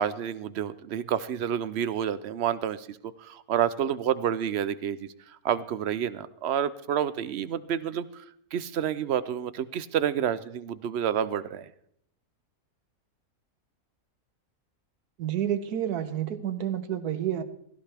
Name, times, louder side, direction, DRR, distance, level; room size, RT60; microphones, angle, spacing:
voice 1, 0.0-8.2 8.5-11.7, right 9 dB, 60° right, 15 dB, 0.7 m, -29 dB
voice 2, 15.2-17.4, right 10 dB, 85° right, 12 dB, 1.5 m, -29 dB
16.0 x 15.5 x 3.4 m, 0.69 s
omnidirectional pair, 1.6 m